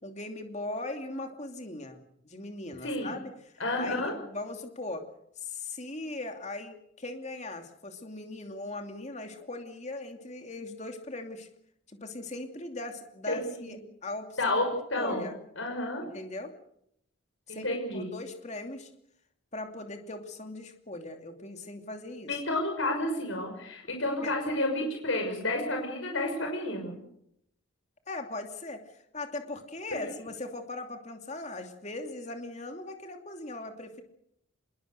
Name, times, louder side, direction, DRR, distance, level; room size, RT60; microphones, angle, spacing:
voice 1, 0.0-5.0 5.4-11.5 11.9-14.5 14.9-15.4 16.0-16.5 17.5-17.7 17.9-18.9 19.5-22.4 24.2-24.3 28.1-34.0, left 2 dB, 35° left, 5 dB, 2.8 m, -39 dB
voice 2, 3.6-4.1 13.3-13.8 14.4-14.7 14.9-15.3 15.6-16.0 17.5-18.1 22.3-27.0, left 1 dB, 65° left, 2 dB, 6.1 m, -30 dB
26.0 x 21.5 x 6.7 m, 0.74 s
head